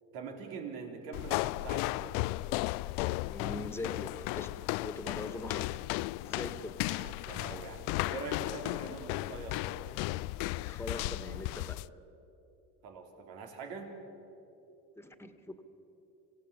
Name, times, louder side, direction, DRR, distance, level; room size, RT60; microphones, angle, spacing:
voice 1, 0.1-2.1 6.8-9.6 12.8-14.0, right 4 dB, 75° right, 2 dB, 3.9 m, -43 dB
sound 1, 1.1-11.9, left 20 dB, 75° left, 0.5 m, -35 dB
voice 2, 3.2-4.5 4.8-5.8 6.1-6.8 10.7-11.8 15.0-15.6, left 1 dB, 5° left, 8 dB, 1.9 m, -42 dB
26.5 x 17.0 x 8.5 m, 2.9 s
supercardioid pair, 115°, 34 cm